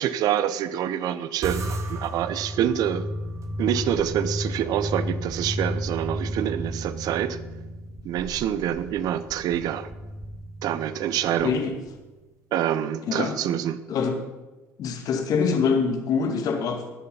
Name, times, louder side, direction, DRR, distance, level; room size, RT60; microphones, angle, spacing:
voice 1, 0.0-3.1 3.6-7.4 8.0-9.9 10.6-11.6 12.5-13.8, right 10 dB, 60° right, 0.8 m, -26 dB
sound 1, 1.4-12.0, right 1 dB, 40° right, 2.2 m, -33 dB
voice 2, 11.4-11.7 13.0-13.4 13.9-14.2 14.8-16.9, left 5 dB, 55° left, 2.3 m, -24 dB
19.0 x 6.8 x 5.5 m
hypercardioid pair, 70°, 7 cm